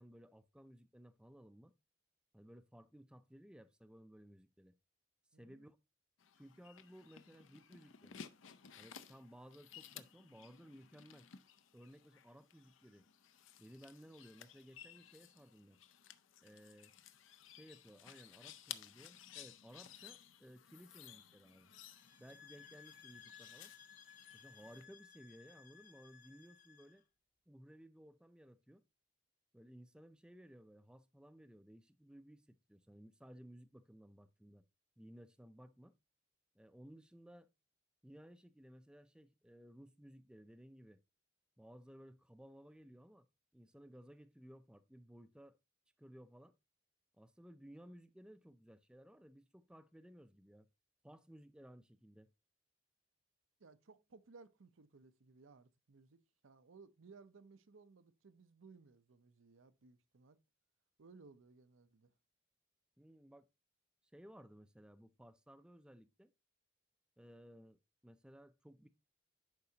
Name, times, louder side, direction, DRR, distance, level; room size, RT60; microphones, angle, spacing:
voice 1, 0.0-1.7 2.3-4.7 5.4-5.8 6.4-8.2 8.7-11.3 11.7-13.0 13.6-15.8 16.4-16.9 17.5-21.7 22.2-23.7 24.3-27.0 27.5-28.8 29.5-34.6 35.0-36.0 36.5-37.5 38.0-41.0 41.6-43.3 43.5-45.6 46.0-46.5 47.2-50.7 51.0-52.3 63.0-63.5 64.1-66.3 67.2-68.9, equal, 5° right, 0.4 m, -58 dB
voice 2, 5.3-5.7 53.6-60.4 61.0-62.1, right 4 dB, 90° right, 0.7 m, -61 dB
sound 1, 6.2-24.9, left 9 dB, 80° left, 0.6 m, -57 dB
sound 2, 22.0-27.0, left 7 dB, 40° left, 0.9 m, -60 dB
10.5 x 4.8 x 2.8 m
head